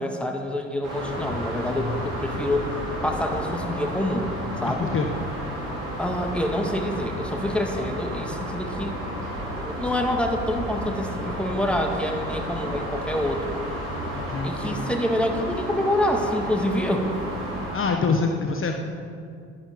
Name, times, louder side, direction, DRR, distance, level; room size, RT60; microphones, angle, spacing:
voice 1, 0.0-2.7 3.0-4.3 4.6-4.9 6.0-9.0 9.5-13.6 14.4-17.1, left 1 dB, 5° left, 3 dB, 2.0 m, -26 dB
sound 1, 0.8-17.8, equal, 90° right, 4.4 m, -32 dB
voice 2, 4.6-5.1 14.1-14.9 17.7-18.8, left 4 dB, 35° left, 4 dB, 1.2 m, -26 dB
15.0 x 11.5 x 5.3 m, 2.3 s
hypercardioid pair, 65°, 35 cm